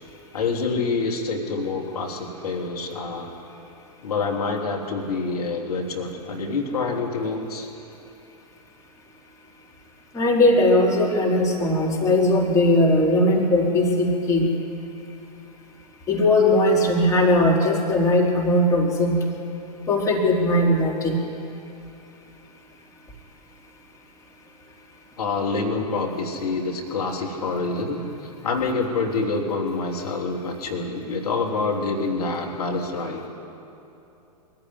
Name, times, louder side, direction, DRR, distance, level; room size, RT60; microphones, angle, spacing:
voice 1, 0.3-3.3 4.0-7.7 25.2-28.0 28.4-33.2, left 3 dB, 65° left, 1 dB, 3.1 m, -26 dB
voice 2, 10.1-14.5 16.1-19.3 19.9-21.2, left 1 dB, 15° left, -3 dB, 3.9 m, -19 dB
22.5 x 15.0 x 9.6 m, 2.9 s
figure-of-eight pair, 105°, 21 cm